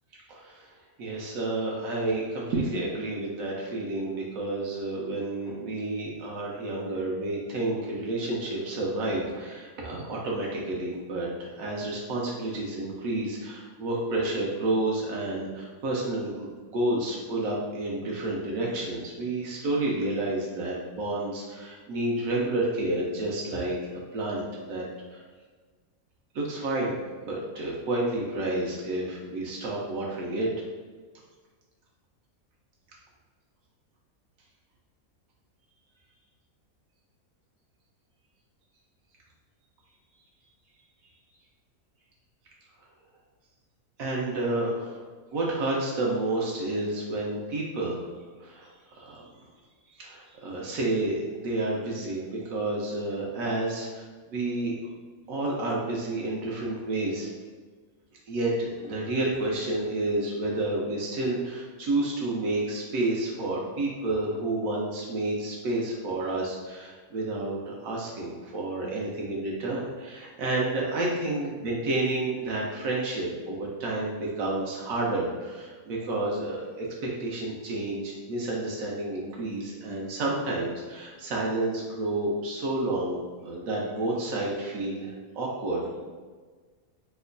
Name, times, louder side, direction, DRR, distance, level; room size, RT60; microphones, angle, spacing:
voice 1, 0.3-0.7 1.0-24.8 25.1-25.2 26.3-30.5 44.0-45.0 45.3-48.1 48.4-49.2 50.0-54.7 55.3-57.3 58.3-86.1, right 2 dB, 75° right, -3 dB, 1.0 m, -30 dB
3.0 x 2.1 x 3.7 m, 1.4 s
omnidirectional pair, 1.5 m